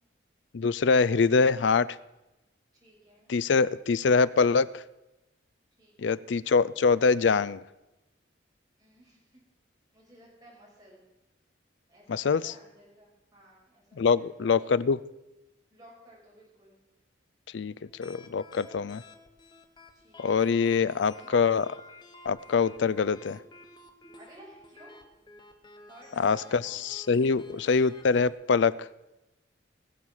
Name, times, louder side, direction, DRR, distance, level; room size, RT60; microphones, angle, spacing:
voice 1, 0.5-2.0 3.3-4.8 6.0-7.6 12.1-12.5 14.0-15.0 17.5-19.0 20.2-21.7 22.2-23.4 26.2-28.9, left 5 dB, 70° left, 19 dB, 0.4 m, -24 dB
voice 2, 2.8-3.3 5.8-6.3 8.8-9.4 9.9-11.0 11.9-14.9 15.7-16.8 19.9-20.5 20.8-21.5 24.1-25.0 25.9-26.9 27.2-27.7, right 1 dB, 20° right, -5 dB, 6.2 m, -55 dB
sound 1, 17.8-28.3, left 2 dB, 25° left, 1.1 m, -52 dB
19.5 x 7.4 x 6.3 m, 0.99 s
head